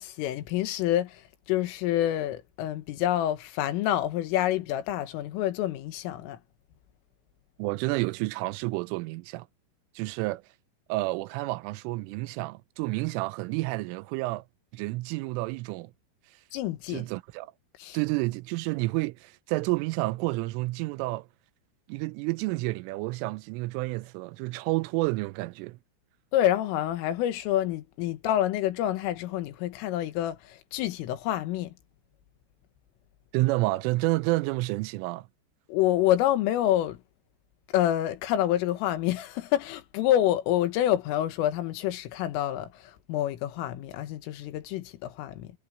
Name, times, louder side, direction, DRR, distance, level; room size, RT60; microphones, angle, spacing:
voice 1, 0.0-6.4 16.5-17.0 17.8-18.0 26.3-31.7 35.7-37.0 37.7-45.5, left 12 dB, 75° left, 4.0 m, -27 dB
voice 2, 7.6-9.5 10.0-10.4 10.9-14.4 14.7-15.9 16.3-16.4 16.9-17.5 17.9-21.3 21.9-25.8 33.3-35.3, right 21 dB, 85° right, 3.0 m, -30 dB
omnidirectional pair, 6.0 m